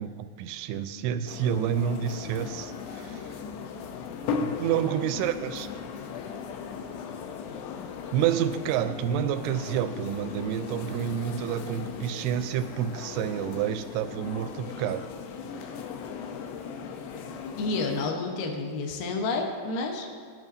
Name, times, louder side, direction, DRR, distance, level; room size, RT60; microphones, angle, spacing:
voice 1, 0.0-3.4 4.6-5.7 8.1-15.1, right 9 dB, 90° right, 9 dB, 2.7 m, -29 dB
sound 1, 1.3-18.1, left 6 dB, 90° left, 2.9 m, -37 dB
voice 2, 17.6-20.1, left 3 dB, 65° left, 1 dB, 2.5 m, -30 dB
18.5 x 9.0 x 2.7 m, 2.1 s
omnidirectional pair, 4.7 m